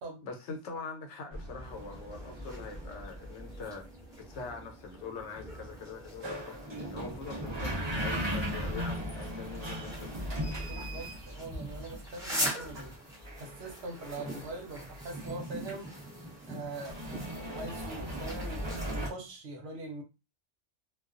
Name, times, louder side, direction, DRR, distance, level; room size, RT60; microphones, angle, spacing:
voice 1, 0.2-3.9 4.3-10.2, left 4 dB, 75° left, 1.0 m, -43 dB
sound 1, 1.3-19.1, equal, 35° right, 0.5 m, -39 dB
sound 2, 1.6-19.1, equal, 5° right, 0.7 m, -43 dB
voice 2, 10.7-13.0 13.4-15.9 16.5-17.0 17.5-20.0, right 2 dB, 70° right, 0.8 m, -42 dB
2.3 x 2.3 x 2.4 m
omnidirectional pair, 1.2 m